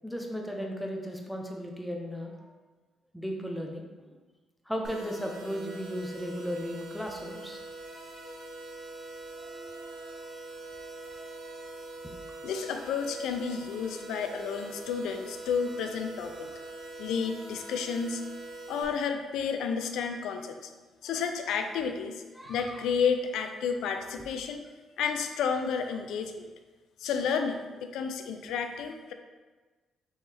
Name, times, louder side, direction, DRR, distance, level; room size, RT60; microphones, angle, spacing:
voice 1, 0.0-2.5 3.1-4.1 4.7-7.6 22.4-22.8, equal, ahead, 1 dB, 0.7 m, -36 dB
sound 1, 4.8-18.8, right 2 dB, 65° right, 0.8 m, -43 dB
voice 2, 12.4-16.5 17.0-18.2 18.7-20.7 21.0-22.2 22.5-24.7 25.0-26.5 27.0-29.1, left 6 dB, 85° left, 6 dB, 0.4 m, -31 dB
4.5 x 3.2 x 3.4 m, 1.3 s
cardioid pair, 90°, 0 cm